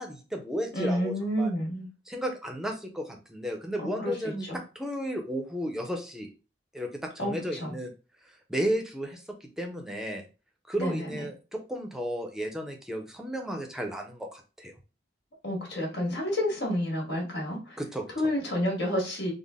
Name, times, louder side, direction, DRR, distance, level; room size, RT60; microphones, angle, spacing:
voice 1, 0.0-1.5 2.1-6.3 6.7-7.9 8.3-9.2 9.6-10.3 10.7-14.7 17.8-18.0, equal, 5° right, 3 dB, 0.5 m, -33 dB
voice 2, 0.7-1.9 4.0-4.6 7.2-7.8 10.8-11.3 15.4-17.8 18.1-19.3, equal, 70° left, -1 dB, 1.6 m, -30 dB
3.6 x 2.1 x 3.5 m, 0.33 s
head